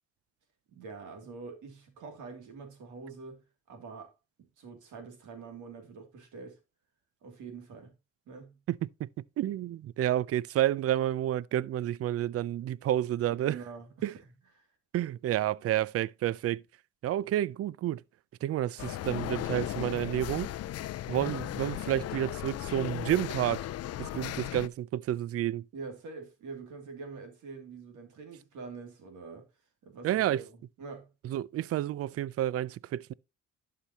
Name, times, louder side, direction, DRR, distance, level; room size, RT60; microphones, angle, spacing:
voice 1, 0.7-4.1 4.4-6.6 7.2-7.9 8.3-8.6 13.3-14.1 14.6-14.7 25.7-29.4 29.8-31.1, right 4 dB, 80° right, 2.8 m, -45 dB
voice 2, 9.4-13.6 14.0-14.1 14.9-16.6 17.0-18.0 18.4-20.5 21.1-23.7 24.0-25.7 30.0-30.4 31.2-33.1, right 12 dB, 50° right, 0.4 m, -30 dB
sound 1, 18.8-24.7, left 13 dB, 55° left, 0.5 m, -36 dB
11.5 x 5.7 x 2.9 m
cardioid pair, 90°, 30 cm